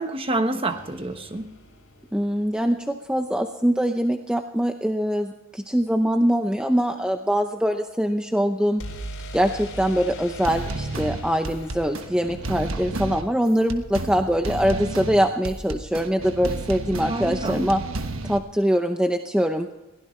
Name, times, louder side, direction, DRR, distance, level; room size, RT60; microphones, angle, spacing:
voice 1, 0.0-1.5 17.1-17.6, right 2 dB, 25° right, 7 dB, 1.1 m, -27 dB
sound 1, 0.7-2.7 8.8-14.6, equal, 75° left, 4.5 m, -41 dB
voice 2, 2.1-8.8 9.3-17.8 18.2-19.7, equal, 5° right, 5 dB, 0.6 m, -23 dB
sound 2, 10.4-18.4, right 2 dB, 65° right, 1.3 m, -31 dB
22.0 x 16.5 x 3.2 m, 1.0 s
head